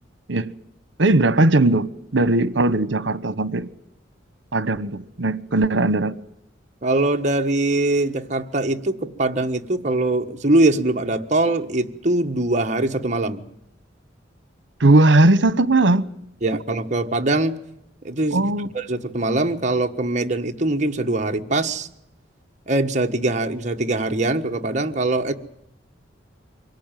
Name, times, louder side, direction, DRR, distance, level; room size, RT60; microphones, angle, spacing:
voice 1, 1.0-3.7 4.5-6.2 14.8-16.1 18.3-18.7, right 2 dB, 80° right, 1.1 m, -18 dB
voice 2, 6.8-13.4 16.4-17.5 18.0-18.4 18.7-21.9 22.7-25.3, right 2 dB, 40° right, 1.5 m, -22 dB
24.0 x 17.5 x 9.1 m
head